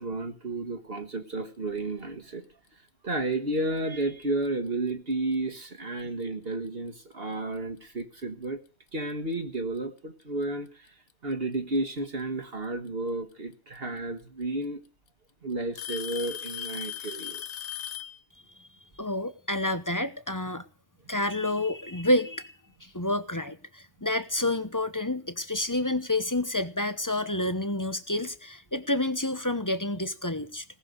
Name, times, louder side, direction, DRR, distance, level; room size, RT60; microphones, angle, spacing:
voice 1, 0.0-2.4 3.0-8.6 8.9-10.9 11.2-14.8 15.4-17.4, right 2 dB, 55° right, 6 dB, 1.8 m, -32 dB
Alarm / Tick-tock, 4.2-4.5 5.3-5.4 6.2-6.3 8.0-8.1 9.3-9.4 10.7-11.1 12.9-13.0 14.2-14.3 14.6-15.1 15.7-18.2, left 10 dB, 75° left, 1.2 m, -37 dB
voice 2, 19.0-20.6 21.1-22.5 22.8-30.6, left 1 dB, 20° left, 12 dB, 0.9 m, -29 dB
19.0 x 7.0 x 8.2 m, 0.39 s
omnidirectional pair, 1.2 m